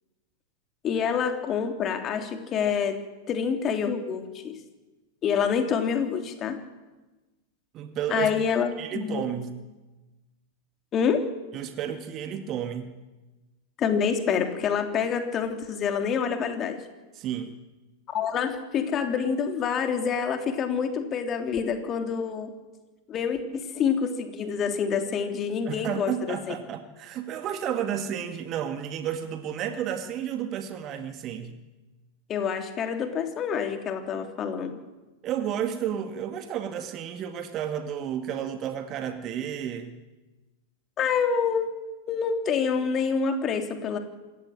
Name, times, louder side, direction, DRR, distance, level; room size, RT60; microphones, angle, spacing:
voice 1, 0.8-3.0 3.3-4.6 5.2-6.6 8.1-9.3 10.9-11.2 13.8-16.8 18.1-22.5 23.1-26.5 32.3-34.8 41.0-41.7 42.1-44.0, left 6 dB, 30° left, 5 dB, 3.3 m, -27 dB
voice 2, 7.7-8.3 8.8-9.6 11.5-12.9 17.2-17.5 25.7-31.5 35.2-39.9, right 9 dB, 35° right, 7 dB, 2.0 m, -32 dB
27.0 x 15.0 x 9.1 m, 1.2 s
figure-of-eight pair, 95°, 0 cm